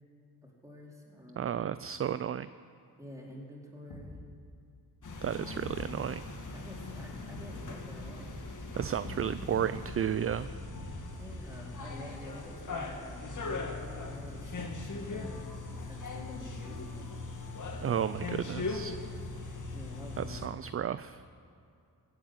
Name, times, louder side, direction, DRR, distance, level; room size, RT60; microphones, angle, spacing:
voice 1, 0.4-1.7 3.0-4.2 6.5-8.4 11.2-17.3 19.7-20.5, equal, 10° right, -3 dB, 4.3 m, -49 dB
voice 2, 1.4-2.5 5.2-6.2 8.8-10.5 17.8-18.9 20.2-21.2, right 9 dB, 35° right, 14 dB, 0.4 m, -33 dB
Thump thud, 3.9-4.3 5.6-5.9 7.3-7.7 9.0-9.4 10.7-11.3, left 2 dB, 80° left, 3.4 m, -45 dB
sound 1, 5.0-20.5, left 3 dB, 50° left, 2.1 m, -40 dB
17.0 x 8.1 x 8.0 m, 2.5 s
cardioid pair, 60°, 40 cm